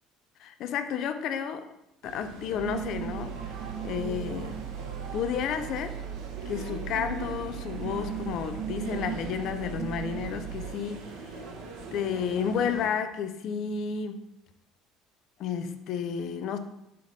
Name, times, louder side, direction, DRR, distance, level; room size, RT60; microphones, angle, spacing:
voice 1, 0.4-1.7 2.0-3.6 3.8-4.6 5.1-6.0 6.5-11.0 11.9-14.2 15.4-16.6, left 7 dB, 50° left, 9 dB, 0.5 m, -31 dB
sound 1, 2.0-12.9, right 3 dB, 60° right, 0.8 m, -43 dB
sound 2, 2.6-10.7, right 8 dB, 45° right, 0.4 m, -37 dB
6.6 x 3.9 x 3.8 m, 0.84 s
figure-of-eight pair, 60°, 0 cm